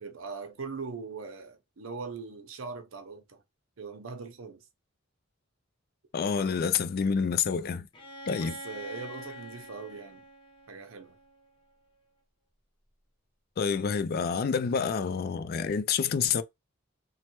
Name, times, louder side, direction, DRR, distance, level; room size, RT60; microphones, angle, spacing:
voice 1, 0.0-3.4 3.8-4.6 8.4-10.3 10.7-11.2, right 4 dB, 75° right, 0.7 m, -41 dB
voice 2, 6.1-7.9 8.3-8.6 13.6-16.4, left 6 dB, 50° left, 0.3 m, -28 dB
Bowed string instrument, 7.9-11.7, equal, 25° left, 0.8 m, -45 dB
3.2 x 2.1 x 2.9 m
head